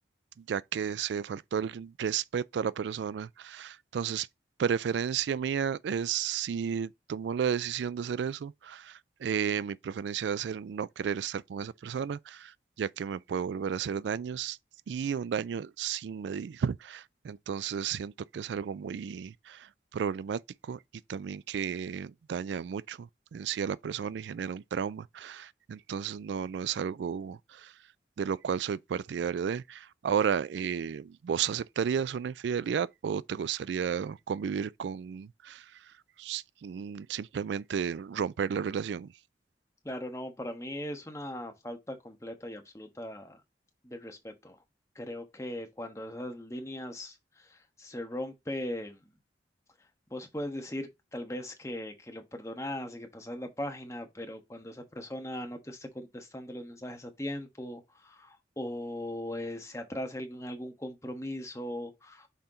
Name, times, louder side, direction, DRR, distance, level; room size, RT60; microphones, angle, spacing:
voice 1, 0.4-4.3 4.6-14.6 14.9-20.8 21.1-27.7 28.2-35.8 36.2-39.1, right 7 dB, 85° right, 0.3 m, -33 dB
voice 2, 39.8-43.4 43.8-44.6 44.9-49.0 50.1-62.3, left 1 dB, 15° left, 1.2 m, -39 dB
5.7 x 4.3 x 3.8 m
head